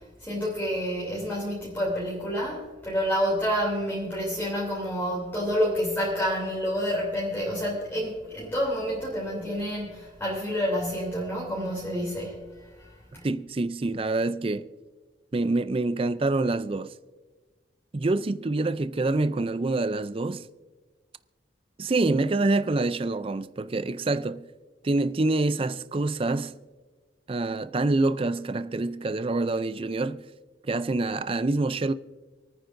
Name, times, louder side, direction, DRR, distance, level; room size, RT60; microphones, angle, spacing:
voice 1, 0.2-12.5 12.8-12.9 13.1-13.2, equal, 10° left, 3.0 m, -28 dB
voice 2, 13.2-14.7 15.3-16.9 17.9-20.5 21.8-24.5 24.8-26.6 27.3-30.3 30.6-31.9, right 2 dB, 30° right, 0.4 m, -26 dB
28.0 x 9.5 x 2.6 m
head